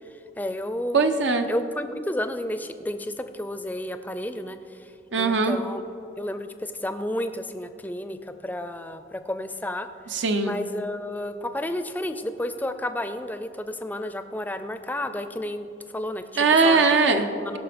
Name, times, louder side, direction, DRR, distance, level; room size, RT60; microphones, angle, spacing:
voice 1, 0.4-1.0 1.5-4.6 5.2-5.8 6.2-9.9 10.4-15.7 15.9-16.9 17.4-17.6, left 1 dB, 10° left, 9 dB, 0.4 m, -31 dB
voice 2, 0.9-1.5 5.1-5.6 10.1-10.6 16.4-17.2, right 4 dB, 80° right, 6 dB, 0.7 m, -20 dB
17.5 x 5.8 x 5.1 m, 2.7 s
head